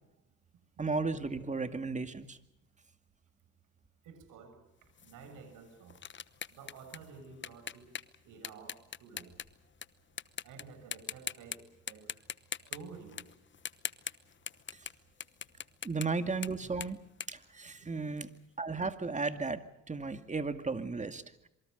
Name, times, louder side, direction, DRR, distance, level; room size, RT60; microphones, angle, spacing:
voice 1, 0.8-2.4 15.8-17.0 17.3-18.3 18.6-19.6 19.9-21.2, right 4 dB, 25° right, 9 dB, 2.3 m, -34 dB
voice 2, 4.0-4.6 5.0-5.9 6.5-7.9 8.2-9.4 10.4-12.1 12.7-13.3, right 5 dB, 90° right, 8 dB, 6.8 m, -51 dB
sound 1, 5.0-9.9 10.2-10.6 10.9-11.6 11.9-18.2, left 7 dB, 40° left, 1.0 m, -42 dB
27.0 x 24.0 x 5.3 m, 0.88 s
cardioid pair, 90°, 30 cm